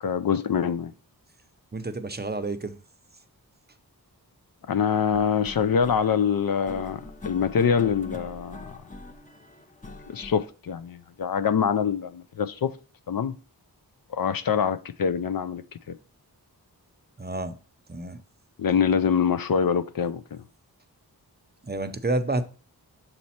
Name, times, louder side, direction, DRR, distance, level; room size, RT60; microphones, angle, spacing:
voice 1, 0.0-0.9 4.7-8.8 10.1-12.7 13.1-13.3 14.1-15.9 18.6-20.4, left 7 dB, 60° left, 0.5 m, -25 dB
voice 2, 1.7-2.8 17.2-17.6 17.9-18.2 21.6-22.4, right 2 dB, 25° right, 0.6 m, -29 dB
sound 1, 5.1-10.5, left 2 dB, 20° left, 0.8 m, -43 dB
6.6 x 4.2 x 4.2 m
wide cardioid pair, 55°, 39 cm